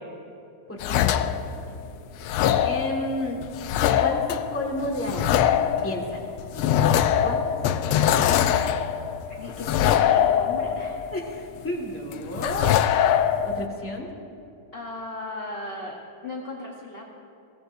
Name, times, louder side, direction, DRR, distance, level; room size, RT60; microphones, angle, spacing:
voice 1, 0.7-1.3 1.6-1.7 2.6-3.4 4.0-6.7 7.2-8.6 11.1-12.8 13.4-14.1, left 1 dB, 5° left, -1 dB, 1.3 m, -32 dB
sound 1, 0.8-1.8 2.2-11.7 12.1-13.7, left 9 dB, 80° left, 1.4 m, -23 dB
voice 2, 9.3-11.0 14.7-17.0, left 2 dB, 35° left, -1 dB, 1.0 m, -36 dB
21.5 x 17.0 x 2.6 m, 2.6 s
omnidirectional pair, 2.4 m